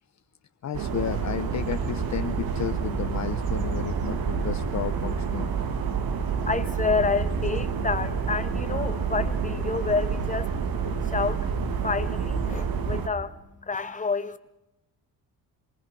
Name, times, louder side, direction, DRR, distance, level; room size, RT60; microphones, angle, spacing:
voice 1, 0.6-5.5, left 10 dB, 45° left, 0.9 m, -32 dB
sound 1, 0.7-13.1, right 5 dB, 70° right, 2.1 m, -28 dB
voice 2, 6.1-10.6 11.0-11.5 11.7-14.4, left 4 dB, 20° left, 1.4 m, -29 dB
27.5 x 20.0 x 5.4 m
cardioid pair, 75°, 37 cm